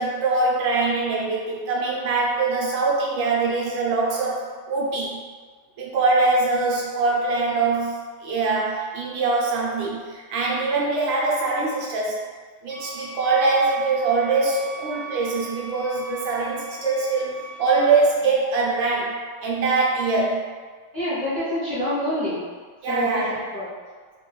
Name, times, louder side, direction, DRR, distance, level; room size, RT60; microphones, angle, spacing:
voice 1, 0.0-5.2 5.8-12.2 12.6-19.1 19.4-20.5 22.8-23.3, right 3 dB, 75° right, -4 dB, 1.2 m, -23 dB
sound 1, 12.7-17.8, right 4 dB, 60° left, 1.0 m, -38 dB
voice 2, 20.9-22.4 22.9-23.7, left 1 dB, 35° left, -13 dB, 0.7 m, -27 dB
3.4 x 2.2 x 3.0 m, 1.5 s
omnidirectional pair, 2.3 m